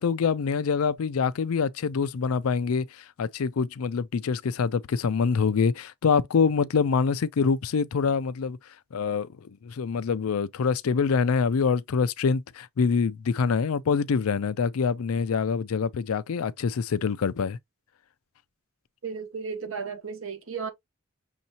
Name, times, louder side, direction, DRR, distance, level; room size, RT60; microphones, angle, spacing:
voice 1, 0.0-8.6 8.9-17.6, left 5 dB, 85° left, 0.4 m, -25 dB
voice 2, 19.0-20.7, right 5 dB, 70° right, 0.9 m, -34 dB
6.4 x 2.7 x 2.8 m
head